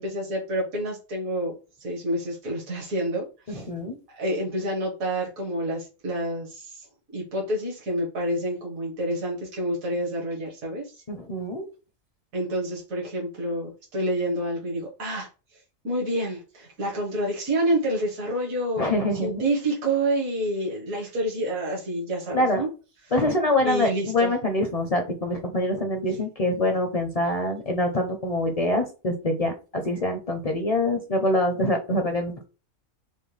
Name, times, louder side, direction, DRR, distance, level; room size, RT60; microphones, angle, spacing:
voice 1, 0.0-1.5 1.8-3.6 4.1-6.9 7.1-10.9 12.3-15.3 15.8-18.8 19.1-22.7 23.6-24.3, right 1 dB, 80° right, -2 dB, 1.9 m, -28 dB
voice 2, 3.5-4.0 11.1-11.6 18.8-19.5 22.3-22.6 23.1-32.3, left 1 dB, 40° left, 4 dB, 0.6 m, -25 dB
5.4 x 2.3 x 3.3 m, 0.32 s
omnidirectional pair, 1.4 m